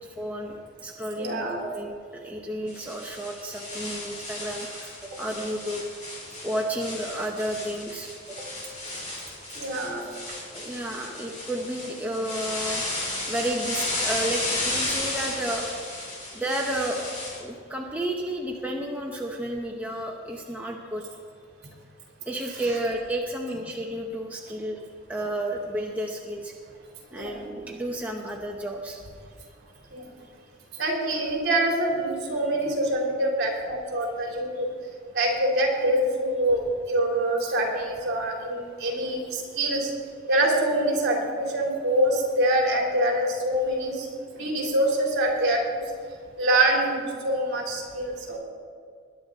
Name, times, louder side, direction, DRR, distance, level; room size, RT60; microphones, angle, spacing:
voice 1, 0.0-5.8 6.4-8.5 10.5-12.8 13.3-15.8 16.3-17.0 17.4-21.1 22.3-24.8 25.1-26.5 27.1-29.0 34.5-34.6, right 1 dB, 5° right, -1 dB, 0.9 m, -32 dB
voice 2, 1.2-1.6 9.6-10.1 27.1-27.4 29.9-30.1 30.8-34.7 35.1-39.9 40.3-44.1 44.3-45.6 46.4-48.4, right 1 dB, 55° right, -1 dB, 3.6 m, -25 dB
sound 1, 2.7-17.4, left 2 dB, 35° left, 4.1 m, -33 dB
21.0 x 10.0 x 4.1 m, 2.1 s
head